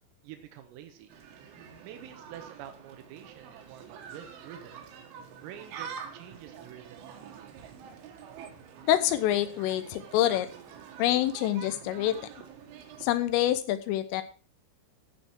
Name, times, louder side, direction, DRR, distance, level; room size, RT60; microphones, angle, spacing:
voice 1, 0.2-1.1 1.8-4.8 5.4-7.6, right 10 dB, 85° right, 6 dB, 4.0 m, -47 dB
sound 1, 1.1-13.1, right 7 dB, 70° right, 3.8 m, -46 dB
voice 2, 8.9-10.5 11.0-12.2 13.0-14.2, left 12 dB, 80° left, 11 dB, 3.3 m, -26 dB
15.0 x 5.9 x 4.5 m, 0.36 s
omnidirectional pair, 5.9 m